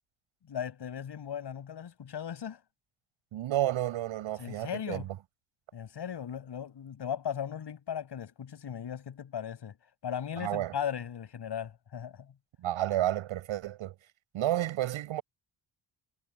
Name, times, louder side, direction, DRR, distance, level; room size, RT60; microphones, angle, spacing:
voice 1, 0.5-2.6 4.4-5.1 5.7-9.8 10.0-12.3, left 8 dB, 55° left, 7.2 m, -37 dB
voice 2, 3.3-5.1 10.4-10.7 12.6-13.9 14.3-15.2, right 13 dB, 75° right, 6.9 m, -31 dB
supercardioid pair, 60°, 49 cm